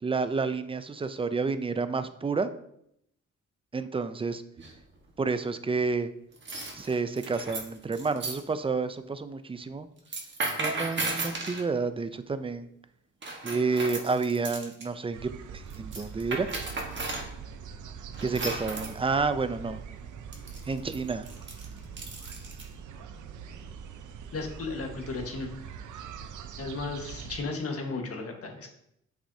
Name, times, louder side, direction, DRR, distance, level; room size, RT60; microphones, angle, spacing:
voice 1, 0.0-2.5 3.7-4.4 5.2-6.1 6.7-9.9 10.6-12.7 13.4-16.5 18.2-19.8 20.7-21.3, right 4 dB, 20° right, 11 dB, 0.4 m, -30 dB
sound 1, 4.6-5.0 6.3-8.4 10.0-11.7 13.2-14.9 15.7-17.3 18.1-19.0 20.3-22.7, right 3 dB, 40° right, 1.4 m, -35 dB
sound 2, 15.1-27.4, right 6 dB, 75° right, 0.6 m, -43 dB
voice 2, 24.3-25.5 26.6-28.7, left 3 dB, 50° left, 3 dB, 1.4 m, -34 dB
8.4 x 6.2 x 2.7 m, 0.76 s
cardioid pair, 115°, 30 cm